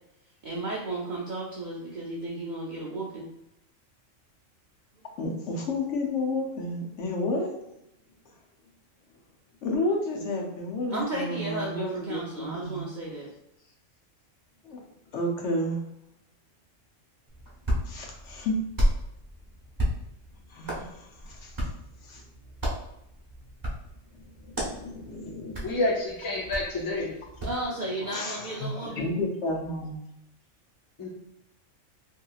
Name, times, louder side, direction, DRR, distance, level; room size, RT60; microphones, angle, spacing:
voice 1, 0.4-3.3 10.9-13.3 27.4-29.1, right 2 dB, 60° right, -5 dB, 0.5 m, -34 dB
voice 2, 5.2-7.5 9.6-12.9 14.6-14.8 15.1-15.8 17.9-18.6 20.5-21.7 22.0-22.2 24.1-25.8 28.0-30.0, left 2 dB, 70° left, 0 dB, 0.9 m, -31 dB
Hands, 17.3-27.6, equal, 20° right, 0.7 m, -33 dB
voice 3, 25.6-27.1 28.8-28.9 31.0-31.1, left 2 dB, 30° left, -2 dB, 0.3 m, -28 dB
2.9 x 2.7 x 2.3 m, 0.82 s
omnidirectional pair, 1.3 m